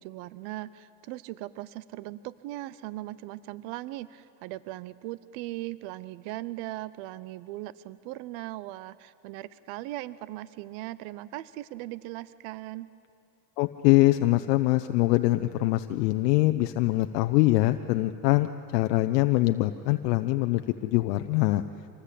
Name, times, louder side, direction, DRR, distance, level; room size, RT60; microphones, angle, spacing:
voice 1, 0.0-12.9, right 16 dB, 65° right, 17 dB, 0.7 m, -39 dB
voice 2, 13.6-21.6, left 18 dB, 80° left, 8 dB, 0.9 m, -23 dB
26.0 x 19.5 x 8.4 m, 2.6 s
supercardioid pair, 115°, 47 cm